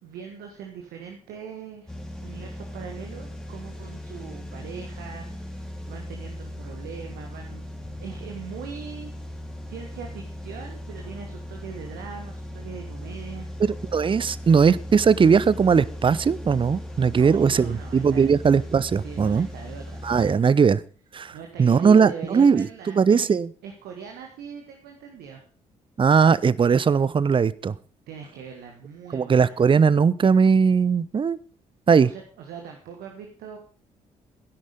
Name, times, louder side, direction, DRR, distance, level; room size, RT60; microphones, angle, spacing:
voice 1, 0.0-9.1 9.7-13.5 17.1-18.6 19.0-20.5 21.3-23.3 23.6-25.4 28.1-29.6 32.0-33.6, right 7 dB, 65° right, 3 dB, 1.6 m, -41 dB
sound 1, 1.9-20.4, left 1 dB, 5° left, 3.2 m, -38 dB
voice 2, 13.6-19.5 20.0-20.8 21.1-21.3 21.6-23.5 26.0-27.8 29.1-31.4 31.9-32.1, right 6 dB, 30° right, 20 dB, 0.6 m, -19 dB
12.5 x 10.5 x 5.1 m, 0.40 s
figure-of-eight pair, 40°, 17 cm